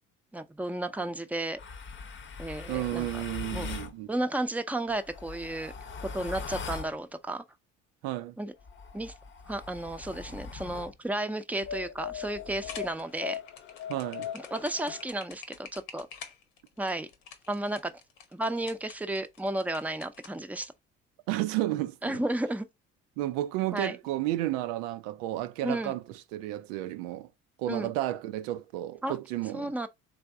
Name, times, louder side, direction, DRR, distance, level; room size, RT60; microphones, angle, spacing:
voice 1, 0.3-1.6 2.4-3.1 3.5-3.7 4.1-5.7 6.1-7.4 8.4-8.5 8.9-9.1 9.5-13.4 14.3-16.1 16.8-17.1 17.5-17.9 18.3-20.7 22.0-22.7 23.7-24.0 25.6-25.9 27.7-27.9 29.0-29.2 29.5-29.9, right 1 dB, 5° right, 0.7 m, -33 dB
sound 1, 1.6-3.9 4.9-7.0 8.6-11.0 11.6-15.1, left 6 dB, 40° left, 0.8 m, -40 dB
voice 2, 2.7-4.1 8.0-8.4 13.9-14.3 21.3-22.2 23.2-27.3 27.6-29.7, right 15 dB, 80° right, 0.5 m, -32 dB
sound 2, 12.6-20.7, left 7 dB, 85° left, 1.0 m, -48 dB
3.5 x 3.4 x 3.5 m
hypercardioid pair, 65°, 30 cm